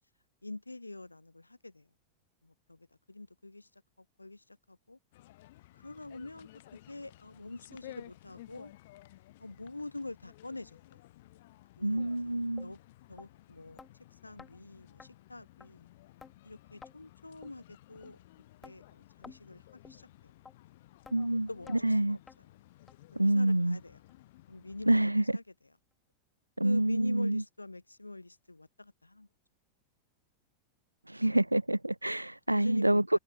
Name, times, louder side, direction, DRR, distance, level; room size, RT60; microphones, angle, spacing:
voice 1, 0.4-1.9 2.4-5.0 5.7-8.7 9.4-11.0 11.8-12.8 13.1-13.9 14.2-15.9 16.4-18.2 18.6-20.3 21.3-22.2 23.1-24.0 24.5-25.4 26.6-29.3 32.5-33.2, left 2 dB, 85° left, 3.9 m, -46 dB
sound 1, 5.1-25.0, left 17 dB, 55° left, 5.9 m, -56 dB
voice 2, 11.8-12.7 21.1-21.5 21.8-22.2 23.2-23.8 24.9-25.4 26.6-27.4 31.1-33.2, right 1 dB, 85° right, 0.4 m, -27 dB
sound 2, 12.0-12.1 12.6-12.7 13.2-13.3 13.8-13.9 14.4-14.5 15.0-15.1 15.6-15.7 16.2-16.3 16.8-17.0 17.4-17.6 18.0-18.1 18.6-18.8 19.2-19.4 19.8-20.0 20.5-20.6 21.1-21.2 21.7-21.8 22.3-22.4 22.9-23.0 23.5-23.6 24.1-24.2 24.7-24.8, left 5 dB, 15° left, 7.5 m, -51 dB
figure-of-eight pair, 90°, 0 cm